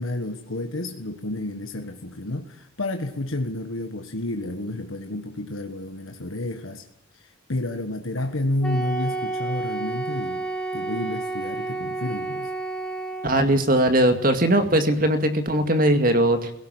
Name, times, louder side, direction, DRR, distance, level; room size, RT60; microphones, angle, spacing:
voice 1, 0.0-6.9 7.2-10.5 10.7-12.5, left 1 dB, 80° left, 5 dB, 1.5 m, -30 dB
Wind instrument woodwind instrument, 8.6-13.5, right 2 dB, 5° left, 1.5 m, -30 dB
voice 2, 13.2-16.5, right 1 dB, 45° right, 8 dB, 2.2 m, -20 dB
17.0 x 17.0 x 9.1 m, 0.76 s
head